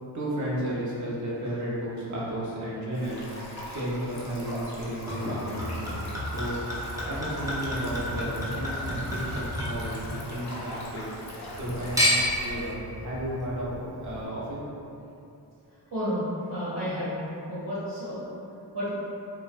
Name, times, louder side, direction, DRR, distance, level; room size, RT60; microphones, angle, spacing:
voice 1, 0.1-6.1 6.3-11.0 11.6-14.6, right 1 dB, 45° right, -6 dB, 0.7 m, -33 dB
Stream, 2.9-12.7, left 1 dB, 45° left, 0.5 m, -41 dB
Chink clink / Liquid, 5.1-10.6 10.9-11.6 12.0-12.5 13.2-13.3, equal, 10° right, 0.5 m, -30 dB
sound 1, 7.8-8.2 9.6-10.1 11.5-14.2, equal, 85° right, 0.8 m, -44 dB
voice 2, 15.9-16.2 16.5-18.2 18.7-18.9, equal, 70° right, -12 dB, 1.1 m, -31 dB
2.4 x 2.1 x 2.4 m, 2.7 s
cardioid pair, 100°, 41 cm